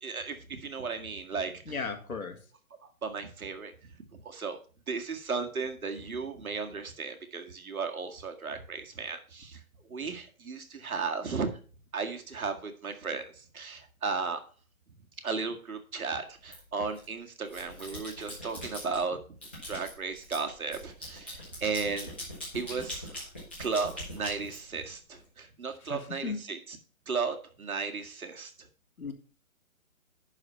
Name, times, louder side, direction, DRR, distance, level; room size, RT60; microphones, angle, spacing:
voice 1, 0.0-1.8 3.0-3.9 4.2-4.6 4.9-9.6 9.9-11.5 11.9-14.4 15.2-19.4 19.7-22.1 22.5-23.2 23.6-26.8 27.1-28.5, right 4 dB, 85° right, 5 dB, 1.9 m, -35 dB
voice 2, 1.7-2.4 25.8-26.4 29.0-29.1, left 5 dB, 85° left, 6 dB, 2.0 m, -36 dB
sound 1, 16.5-17.0 17.4-19.0 19.4-25.2, left 1 dB, 10° left, 1.0 m, -42 dB
11.0 x 4.2 x 5.5 m, 0.39 s
hypercardioid pair, 175°, 42 cm